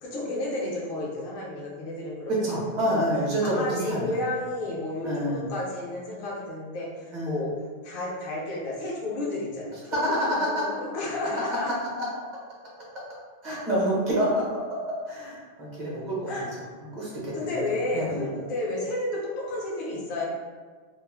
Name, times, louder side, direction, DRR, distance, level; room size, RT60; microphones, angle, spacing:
voice 1, 0.0-2.3 2.9-3.0 3.4-7.5 7.8-11.7 16.3-16.5 17.1-20.2, left 2 dB, 55° left, -3 dB, 0.7 m, -32 dB
voice 2, 2.3-4.2 5.0-5.5 7.1-7.4 9.9-10.2 10.5-10.6 13.4-16.3 16.9-17.6 17.9-18.3, right 1 dB, 40° right, -6 dB, 0.8 m, -27 dB
2.4 x 2.0 x 3.3 m, 1.5 s
omnidirectional pair, 1.3 m